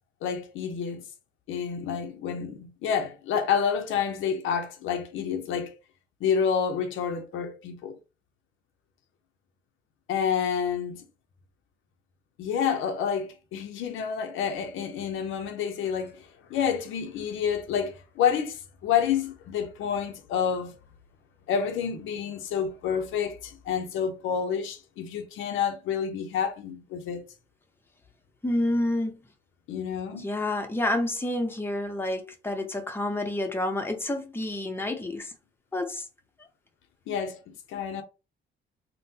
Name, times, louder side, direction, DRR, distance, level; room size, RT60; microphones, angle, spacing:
voice 1, 0.2-1.0 1.5-5.7 6.2-8.0 10.1-11.0 12.4-20.7 21.5-27.3 29.7-30.3 37.1-38.0, left 7 dB, 85° left, 0.6 m, -29 dB
voice 2, 28.4-29.2 30.1-35.3 35.7-36.0, left 1 dB, 10° left, 0.7 m, -29 dB
3.6 x 2.1 x 2.7 m
cardioid pair, 90°, 20 cm